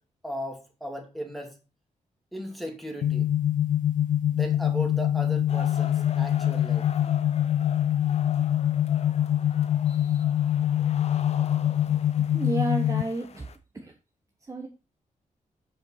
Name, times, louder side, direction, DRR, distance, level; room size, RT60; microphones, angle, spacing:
voice 1, 0.2-1.5 2.3-3.3 4.3-6.8, equal, ahead, 2 dB, 2.4 m, -36 dB
sound 1, 3.0-13.0, left 11 dB, 75° left, 0.5 m, -24 dB
sound 2, 5.5-13.6, left 6 dB, 50° left, 0.9 m, -43 dB
voice 2, 11.8-13.5 13.7-13.9 14.5-14.7, right 2 dB, 25° right, 2 dB, 1.1 m, -32 dB
7.5 x 5.3 x 5.7 m, 0.31 s
wide cardioid pair, 120°, 13 cm